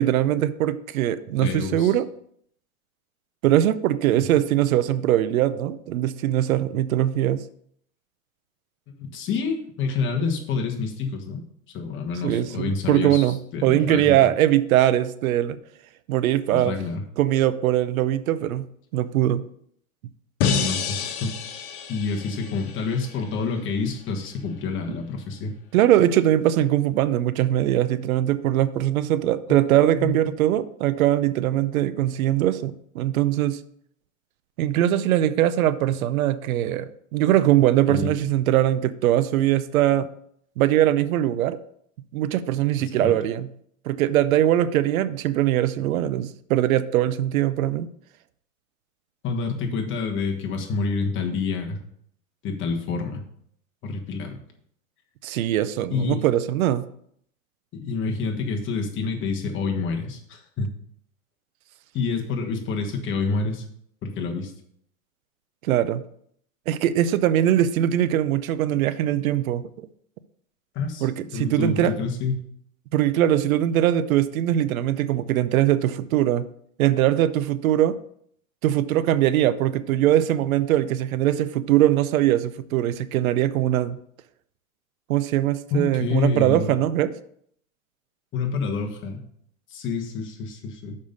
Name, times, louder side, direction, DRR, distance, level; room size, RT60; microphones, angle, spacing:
voice 1, 0.0-2.1 3.4-7.4 12.2-15.6 16.1-16.7 17.2-18.7 18.9-19.4 25.7-33.6 34.6-40.1 40.6-41.6 42.1-43.5 43.9-47.9 55.2-56.9 65.6-66.0 66.7-69.9 71.0-71.9 72.9-76.5 76.8-77.9 78.6-84.0 85.1-87.1, right 12 dB, 80° right, 15 dB, 0.7 m, -21 dB
voice 2, 1.4-1.9 4.1-4.2 9.0-11.4 11.7-14.2 16.5-17.0 20.5-21.4 21.9-25.5 29.5-29.6 29.9-30.1 37.9-38.1 42.8-43.1 49.2-51.8 52.4-53.2 53.8-54.4 55.9-56.2 57.7-60.7 61.9-63.6 64.0-64.5 70.7-72.4 85.7-86.7 88.3-89.2 89.7-91.0, left 4 dB, 30° left, 2 dB, 1.4 m, -28 dB
sound 1, 20.4-23.5, left 6 dB, 55° left, 1.5 m, -29 dB
6.6 x 5.4 x 5.2 m, 0.67 s
supercardioid pair, 135°, 41 cm